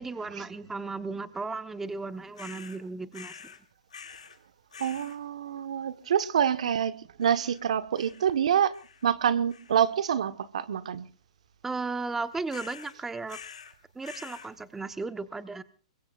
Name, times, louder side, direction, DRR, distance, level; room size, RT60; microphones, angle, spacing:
voice 1, 0.0-3.5 11.6-13.4 13.9-15.6, right 3 dB, 10° right, 1.0 m, -35 dB
sound 1, 2.3-2.8 3.1-3.6 3.9-4.4 4.7-5.2 7.2-7.6 7.9-8.3 8.7-9.1 9.5-9.9 12.5-12.9 13.3-13.7 14.0-14.5, left 6 dB, 90° left, 3.6 m, -47 dB
voice 2, 4.8-8.7 9.0-11.1, right 8 dB, 75° right, 1.3 m, -26 dB
26.5 x 22.5 x 2.5 m
hypercardioid pair, 130°, 4 cm